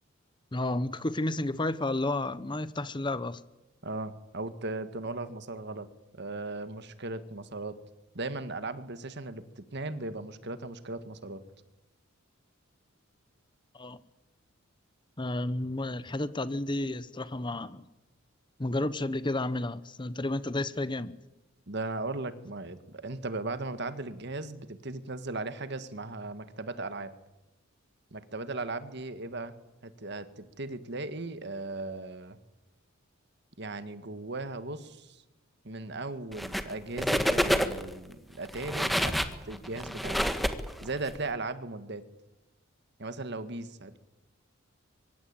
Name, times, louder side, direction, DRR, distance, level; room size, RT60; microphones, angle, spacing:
voice 1, 0.5-3.4 13.7-14.0 15.2-17.8 18.6-21.1, left 2 dB, 25° left, 0.9 m, -31 dB
voice 2, 3.8-5.9 6.1-7.8 8.2-11.4 21.7-27.1 28.1-29.5 29.8-32.4 33.6-35.2 35.6-40.2 40.8-42.0 43.0-44.0, right 2 dB, 55° right, 1.8 m, -37 dB
sound 1, 36.3-36.7 37.0-37.9 38.5-41.1, equal, ahead, 1.6 m, -28 dB
24.5 x 23.0 x 8.9 m
head